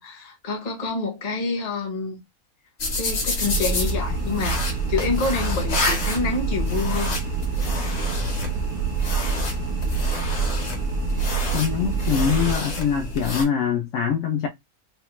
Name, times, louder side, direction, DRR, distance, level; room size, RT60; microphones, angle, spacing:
voice 1, 0.0-2.2 2.9-7.2, left 4 dB, 35° left, 0.7 m, -27 dB
sound 1, 2.8-13.4, left 2 dB, 50° left, 1.2 m, -29 dB
sound 2, 3.4-12.5, right 5 dB, 85° right, 1.1 m, -27 dB
voice 2, 11.5-14.5, left 7 dB, 65° left, 0.9 m, -23 dB
3.3 x 2.0 x 2.9 m
omnidirectional pair, 1.6 m